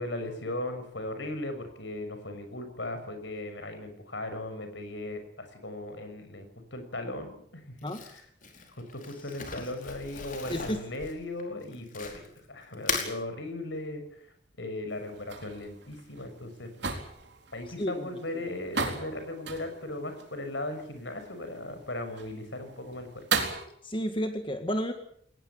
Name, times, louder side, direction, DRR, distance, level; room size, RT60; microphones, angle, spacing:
voice 1, 0.0-8.2 8.7-14.3 14.6-16.7 17.5-23.2, left 1 dB, 65° left, 7 dB, 6.6 m, -37 dB
Crumpling crinkling, 7.8-12.4 12.7-13.1, left 5 dB, 40° left, 4.9 m, -37 dB
sound 1, 14.9-23.7, right 5 dB, 60° right, 4.0 m, -37 dB
voice 2, 23.8-24.9, equal, 25° left, 6 dB, 1.9 m, -31 dB
21.0 x 19.5 x 8.8 m, 0.66 s
head